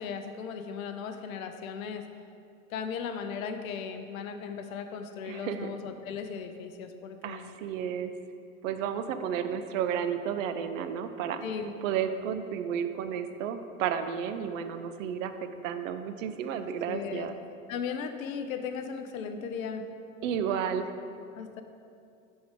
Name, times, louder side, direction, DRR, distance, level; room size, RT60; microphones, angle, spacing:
voice 1, 0.0-2.1 2.7-7.6 11.4-11.7 16.9-17.3 17.7-19.8 21.4-21.6, left 6 dB, 70° left, 7 dB, 0.6 m, -37 dB
voice 2, 5.3-5.7 7.2-8.1 8.6-11.4 11.8-15.3 15.6-17.4 20.2-20.9, right 8 dB, 65° right, 9 dB, 0.5 m, -32 dB
6.0 x 3.6 x 4.9 m, 2.5 s
figure-of-eight pair, 70°, 42 cm